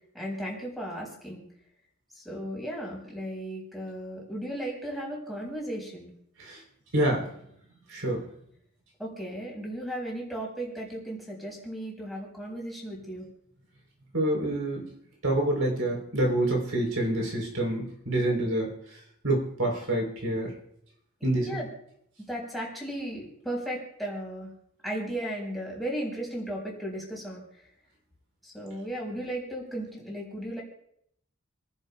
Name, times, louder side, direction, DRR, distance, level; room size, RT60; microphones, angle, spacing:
voice 1, 0.1-1.5 2.2-6.1 9.0-13.2 21.4-21.7 22.3-24.5 24.8-27.4 28.4-30.6, right 1 dB, ahead, -3 dB, 4.6 m, -35 dB
voice 2, 6.9-7.2 7.9-8.2 14.1-14.8 15.2-18.7 19.2-20.5 21.2-21.5, right 1 dB, 80° right, 0 dB, 3.7 m, -27 dB
29.5 x 11.0 x 2.3 m, 0.72 s
head